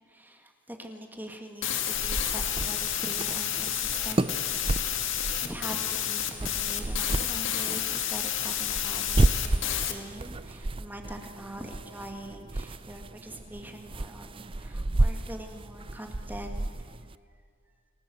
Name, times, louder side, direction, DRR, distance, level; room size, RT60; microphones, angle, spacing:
voice 1, 0.1-5.0 5.4-16.7, right 1 dB, 10° right, 4 dB, 1.9 m, -43 dB
sound 1, 1.6-9.9, left 10 dB, 60° left, 2.1 m, -30 dB
sound 2, 1.9-17.2, right 2 dB, 25° right, 0.5 m, -32 dB
29.5 x 18.5 x 7.8 m, 2.2 s
head